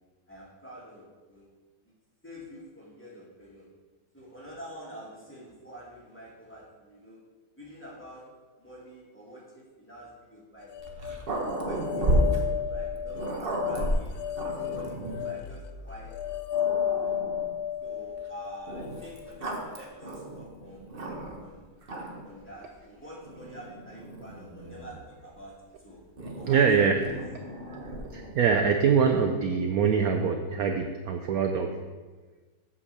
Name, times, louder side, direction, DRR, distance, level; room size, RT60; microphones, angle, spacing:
voice 1, 0.3-1.5 1.8-1.9 2.2-3.7 4.1-7.2 7.6-8.2 8.6-10.9 11.3-14.2 14.6-16.1 16.6-17.2 17.8-20.9 21.4-21.7 22.2-26.0 26.4-27.2, equal, 5° left, -6 dB, 2.1 m, -47 dB
sound 1, 10.7-19.9, left 10 dB, 65° left, 1.0 m, -33 dB
Growling, 10.8-15.4 16.1-16.2 16.5-17.6 18.7-21.5 21.8-22.3 23.2-25.0 26.2-28.7, right 1 dB, 35° right, 1.2 m, -33 dB
voice 2, 26.5-27.1 27.3-31.8, right 6 dB, 65° right, 5 dB, 1.0 m, -24 dB
8.2 x 5.5 x 6.7 m, 1.3 s
omnidirectional pair, 2.0 m